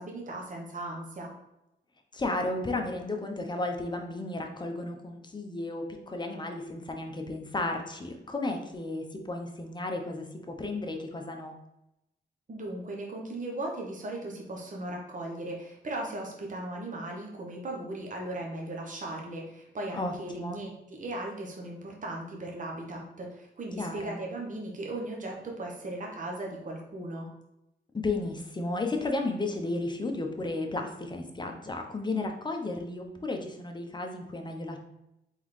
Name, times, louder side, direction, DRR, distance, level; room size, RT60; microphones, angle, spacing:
voice 1, 0.0-1.3 12.5-27.3, right 1 dB, 40° right, 0 dB, 1.0 m, -37 dB
voice 2, 2.1-11.5 19.9-20.6 23.8-24.2 27.9-34.8, left 2 dB, 25° left, 3 dB, 0.8 m, -33 dB
3.8 x 3.6 x 3.2 m, 0.87 s
cardioid pair, 65°, 20 cm